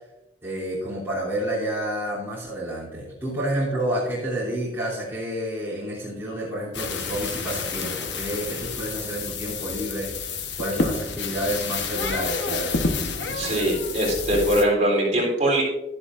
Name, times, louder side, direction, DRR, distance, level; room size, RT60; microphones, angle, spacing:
voice 1, 0.4-10.1 10.6-12.9, right 1 dB, 15° right, -9 dB, 3.0 m, -29 dB
sound 1, 6.7-14.6, left 4 dB, 65° left, 1.1 m, -29 dB
voice 2, 13.3-15.6, right 1 dB, 40° right, -4 dB, 3.8 m, -22 dB
12.0 x 11.0 x 2.6 m, 1.0 s
head